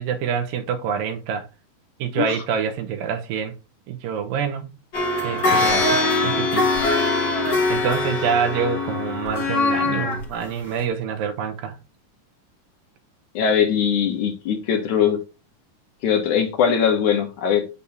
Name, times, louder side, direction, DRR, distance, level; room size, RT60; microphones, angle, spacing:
voice 1, 0.0-1.5 2.0-3.5 3.9-4.7 5.2-7.2 7.7-11.8, right 7 dB, 90° right, 2.8 m, -26 dB
sound 1, 4.9-10.2 10.8-10.9, left 3 dB, 40° left, 1.8 m, -22 dB
voice 2, 13.3-15.2 16.0-17.6, left 7 dB, 65° left, 2.6 m, -20 dB
8.4 x 7.2 x 2.8 m
omnidirectional pair, 3.9 m